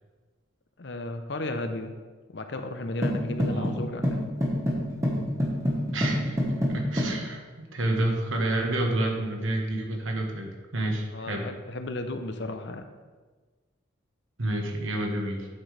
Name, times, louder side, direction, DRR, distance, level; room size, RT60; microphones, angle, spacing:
voice 1, 0.8-1.9 2.3-4.3 11.1-12.8, left 2 dB, 60° left, 7 dB, 0.7 m, -34 dB
sound 1, 3.0-7.2, equal, 15° right, 1.3 m, -27 dB
voice 2, 5.9-6.4 6.7-11.5 14.4-15.5, right 1 dB, 90° right, 2 dB, 1.3 m, -29 dB
8.8 x 7.6 x 3.4 m, 1.4 s
head